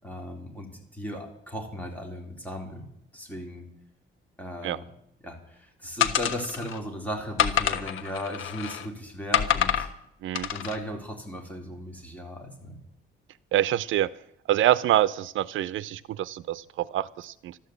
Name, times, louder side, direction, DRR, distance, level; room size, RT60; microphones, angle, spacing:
voice 1, 0.0-2.9 3.1-3.6 4.4-4.8 5.2-9.9 10.5-12.8, equal, 5° left, 0 dB, 4.0 m, -36 dB
sound 1, 6.0-6.8 7.4-8.9 9.3-9.9 10.4-10.8, left 10 dB, 80° left, 1.2 m, -26 dB
voice 2, 13.5-14.1 14.5-17.6, right 13 dB, 75° right, 17 dB, 0.5 m, -26 dB
13.0 x 12.0 x 8.0 m, 0.78 s
cardioid pair, 120°, 20 cm